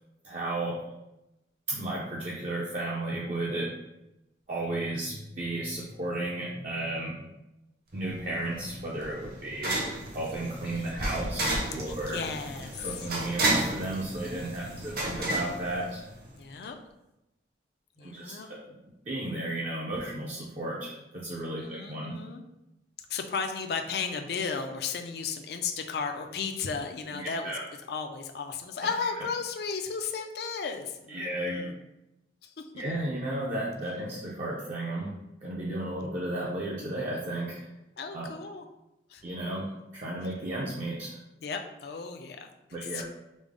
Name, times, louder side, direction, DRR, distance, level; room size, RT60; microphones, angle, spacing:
voice 1, 0.2-0.8 1.7-3.7 4.5-7.2 7.9-9.8 10.1-12.2 12.8-16.0 18.0-18.8 19.1-22.2 27.1-27.6 31.1-31.6 32.7-37.7 38.1-38.3 39.2-41.2 42.7-43.0, right 1 dB, 40° right, -4 dB, 0.5 m, -34 dB
sound 1, 8.1-16.4, right 1 dB, 55° right, 0.9 m, -32 dB
voice 2, 10.7-11.3 11.8-13.0 14.1-15.0 16.4-16.8 18.0-18.5 21.6-22.4 23.1-27.6 27.9-31.8 32.4-32.7 38.0-38.6 39.1-39.2 41.4-43.0, left 5 dB, 60° left, 5 dB, 0.4 m, -35 dB
5.1 x 2.0 x 3.5 m, 0.94 s
head